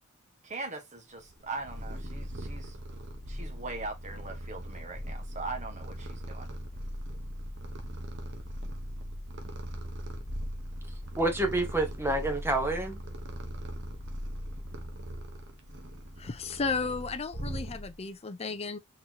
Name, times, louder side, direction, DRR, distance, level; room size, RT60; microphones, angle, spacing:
voice 1, 0.4-2.7 3.3-6.5, right 3 dB, 35° right, 1.5 m, -40 dB
Purr, 1.3-18.1, equal, 60° right, 1.1 m, -39 dB
voice 2, 10.9-13.0, right 2 dB, 10° right, 1.2 m, -29 dB
voice 3, 16.2-18.8, left 4 dB, 30° left, 0.5 m, -34 dB
4.3 x 4.0 x 2.8 m
head